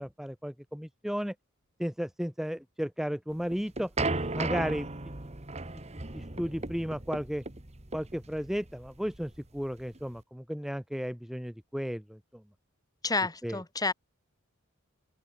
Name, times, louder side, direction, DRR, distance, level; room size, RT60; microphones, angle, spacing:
voice 1, 0.0-1.3 1.8-3.9 4.3-4.9 6.1-7.4 7.9-12.2 13.4-13.6, equal, ahead, 0.7 m, -34 dB
sound 1, 3.3-10.2, right 3 dB, 30° right, 1.9 m, -36 dB
voice 2, 13.0-13.9, left 3 dB, 20° left, 1.8 m, -29 dB
open air
head